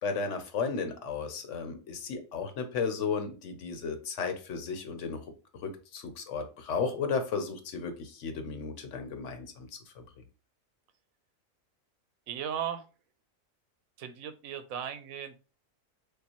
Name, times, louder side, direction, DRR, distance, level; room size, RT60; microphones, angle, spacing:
voice 1, 0.0-5.2 5.6-10.0, left 5 dB, 65° left, 7 dB, 1.1 m, -34 dB
voice 2, 12.3-12.9 14.0-15.4, right 9 dB, 90° right, 10 dB, 1.0 m, -36 dB
6.6 x 2.3 x 2.9 m, 0.34 s
omnidirectional pair, 1.4 m